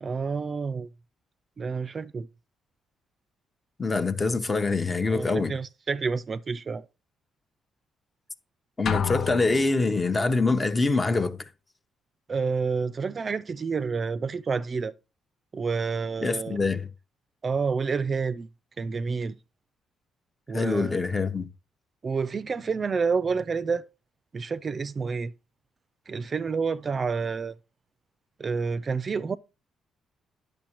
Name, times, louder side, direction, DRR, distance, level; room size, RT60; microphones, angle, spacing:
voice 1, 0.0-0.9 1.6-2.3 5.1-6.9 12.3-14.9 15.5-16.6 17.4-18.5 18.8-19.4 20.5-20.9 22.0-23.9 24.3-25.3 26.1-27.5 28.4-29.4, right 5 dB, 40° right, 0.4 m, -29 dB
voice 2, 3.8-5.5 8.8-11.5 16.2-16.9 20.5-21.5, left 3 dB, 25° left, 0.8 m, -25 dB
sound 1, 8.9-10.3, left 8 dB, 55° left, 0.5 m, -31 dB
10.0 x 6.4 x 3.0 m
cardioid pair, 90°, 0 cm